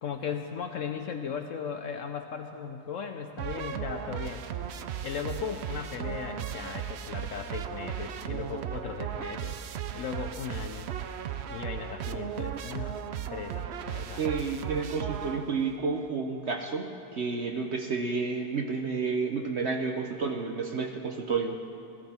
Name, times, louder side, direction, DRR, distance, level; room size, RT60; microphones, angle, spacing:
voice 1, 0.0-4.7 5.0-9.6 9.9-10.9 11.5-13.0 13.3-14.2, left 6 dB, 65° left, 5 dB, 0.8 m, -37 dB
sound 1, 3.4-15.8, right 9 dB, 85° right, 0.5 m, -36 dB
voice 2, 14.2-21.6, right 4 dB, 55° right, 3 dB, 0.8 m, -30 dB
17.0 x 15.0 x 4.3 m, 2.8 s
omnidirectional pair, 1.8 m